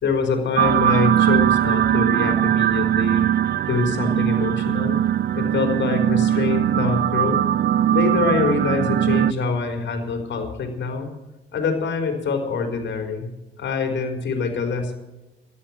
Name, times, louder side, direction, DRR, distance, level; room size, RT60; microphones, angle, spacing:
voice 1, 0.0-3.3 3.7-5.0 5.3-7.4 7.9-11.1 11.5-13.3 13.6-14.9, left 4 dB, 65° left, 4 dB, 4.3 m, -25 dB
sound 1, 0.6-9.3, right 11 dB, 55° right, 0.5 m, -20 dB
13.5 x 11.5 x 7.9 m, 1.0 s
cardioid pair, 90°, 20 cm